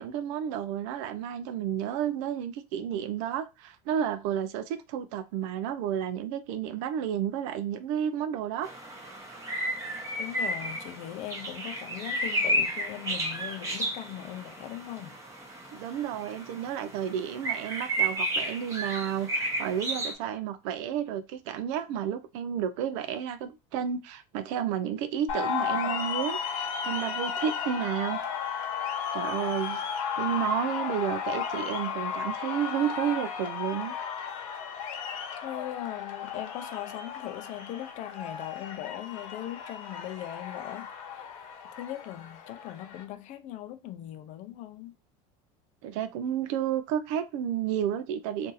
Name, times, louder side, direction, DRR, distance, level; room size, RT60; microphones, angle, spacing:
voice 1, 0.0-8.7 15.7-28.2 29.1-33.9 45.8-48.5, right 9 dB, 70° right, 0.5 m, -31 dB
sound 1, 8.6-20.1, right 1 dB, 20° right, 0.9 m, -32 dB
voice 2, 10.2-15.2 35.4-40.9 41.8-44.9, left 13 dB, 50° left, 0.5 m, -39 dB
sound 2, 25.3-43.0, left 7 dB, 90° left, 1.0 m, -34 dB
2.7 x 2.6 x 3.8 m
cardioid pair, 140°, 16 cm